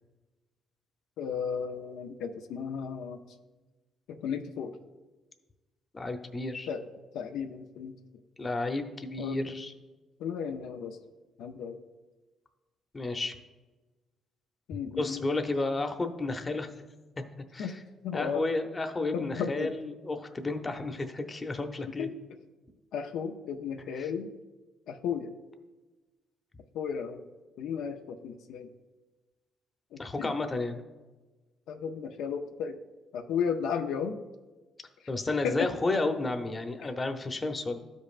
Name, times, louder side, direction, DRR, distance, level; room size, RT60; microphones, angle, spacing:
voice 1, 1.2-3.2 4.1-4.8 6.7-6.8 7.1-8.0 9.2-9.5 10.2-11.0 11.4-11.8 14.7-15.2 17.6-17.7 18.0-18.4 19.1-19.7 22.0-22.1 22.9-24.3 24.9-25.3 26.7-27.3 27.6-28.7 29.9-30.3 31.7-32.8 33.1-34.2 35.0-35.1 35.4-35.7 36.8-36.9, left 7 dB, 85° left, 5 dB, 0.5 m, -34 dB
voice 2, 5.9-6.7 8.4-9.7 12.9-13.4 15.0-16.7 17.5-17.7 18.1-22.1 23.9-24.0 30.0-30.8 35.1-37.8, left 2 dB, 25° left, 6 dB, 0.7 m, -32 dB
13.0 x 5.3 x 2.5 m, 1.2 s
cardioid pair, 90°, 0 cm